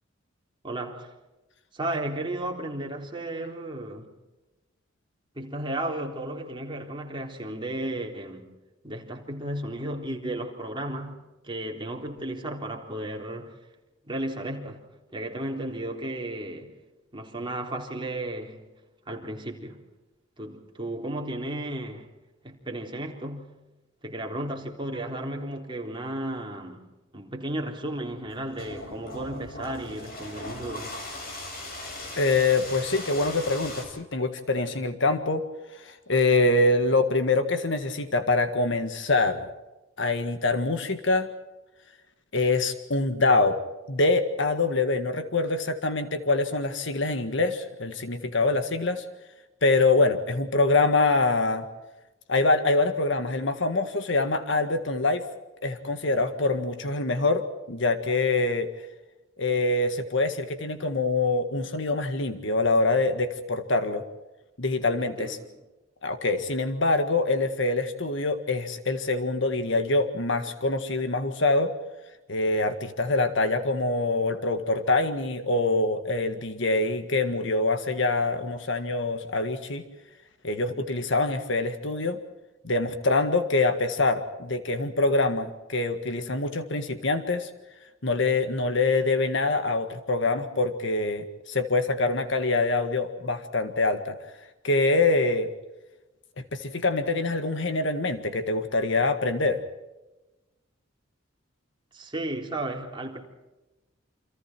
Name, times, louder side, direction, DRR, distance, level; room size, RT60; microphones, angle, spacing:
voice 1, 0.6-1.1 1.7-4.1 5.4-8.5 8.8-13.6 14.1-14.8 15.1-16.8 17.1-18.8 19.1-19.8 20.4-22.1 22.4-23.5 24.0-26.9 27.1-31.0 65.0-65.5 101.9-103.2, right 1 dB, 25° right, 3.9 m, -34 dB
sound 1, 28.1-33.9, left 1 dB, 50° left, 7.4 m, -39 dB
voice 2, 32.2-35.5 35.7-39.5 40.0-41.3 42.3-43.6 43.9-49.0 49.6-51.6 52.3-55.2 55.6-57.4 57.7-58.7 59.4-64.0 64.6-65.4 66.0-71.7 72.3-79.8 80.4-82.2 82.6-87.5 88.0-94.2 94.6-95.5 96.5-99.6, left 3 dB, 65° left, 1.8 m, -25 dB
29.0 x 27.0 x 4.6 m
head